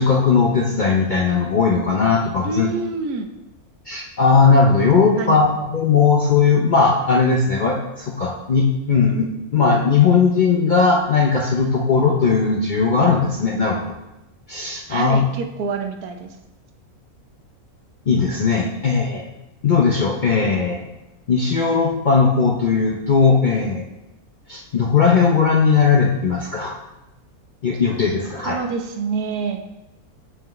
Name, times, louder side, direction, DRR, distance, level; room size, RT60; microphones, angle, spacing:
voice 1, 0.0-2.7 3.9-13.9 14.5-15.2 18.1-19.3 19.6-20.8 21.3-23.8 24.5-26.7 27.6-28.6, left 5 dB, 55° left, -1 dB, 0.5 m, -18 dB
voice 2, 2.4-3.3 5.2-5.4 14.9-16.4 28.4-29.6, right 5 dB, 85° right, 5 dB, 1.2 m, -26 dB
7.0 x 5.7 x 3.1 m, 0.94 s
omnidirectional pair, 1.6 m